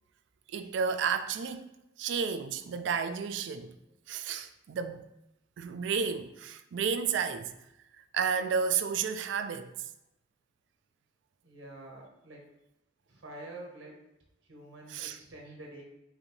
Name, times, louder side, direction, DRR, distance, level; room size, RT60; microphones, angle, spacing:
voice 1, 0.5-1.7 2.0-3.8 4.1-5.0 5.6-7.5 8.0-9.7 14.9-15.2, right 6 dB, 60° right, 0.3 m, -32 dB
voice 2, 11.4-12.5 13.1-14.0 14.5-15.8, right 1 dB, 80° right, 1.1 m, -47 dB
5.0 x 2.7 x 3.1 m
head